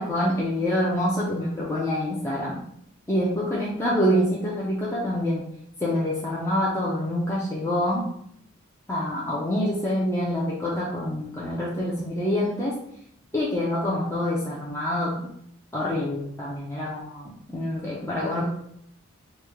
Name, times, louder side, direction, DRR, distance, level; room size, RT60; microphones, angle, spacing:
voice 1, 0.0-2.6 3.1-5.5 5.8-8.0 8.9-12.8 13.3-15.2 15.7-18.4, left 1 dB, 15° left, -6 dB, 0.4 m, -26 dB
3.1 x 2.1 x 3.4 m, 0.71 s
head